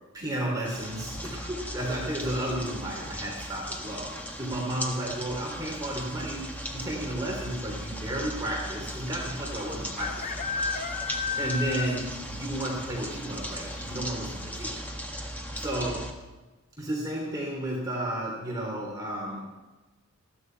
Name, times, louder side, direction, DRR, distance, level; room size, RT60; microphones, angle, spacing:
voice 1, 0.1-6.5 6.7-10.8 11.4-14.9 15.5-16.2 16.8-19.5, right 1 dB, 15° right, -3 dB, 3.2 m, -33 dB
sound 1, 0.6-16.1, equal, 10° left, 1.6 m, -38 dB
sound 2, 2.4-2.9 4.7-5.1 5.4-5.5 5.7-6.2 7.0-7.1 7.3-7.4 8.9-9.0 10.0-12.3 12.6-12.7 13.2-13.3 13.7-13.8, left 5 dB, 40° left, 1.3 m, -33 dB
20.0 x 15.0 x 4.6 m, 1.2 s
head